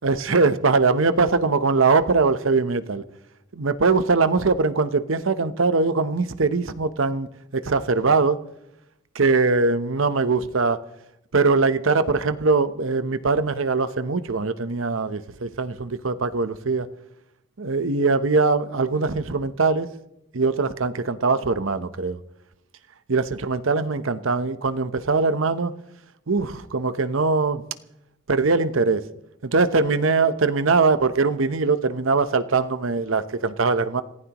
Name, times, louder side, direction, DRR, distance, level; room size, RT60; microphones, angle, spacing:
voice 1, 0.0-3.0 3.5-7.3 7.5-8.4 9.2-10.8 11.3-16.9 17.6-19.9 20.3-22.2 23.1-25.7 26.3-27.6 28.3-29.0 29.4-34.0, right 4 dB, 90° right, 0.9 m, -21 dB
27.5 x 15.5 x 3.0 m
head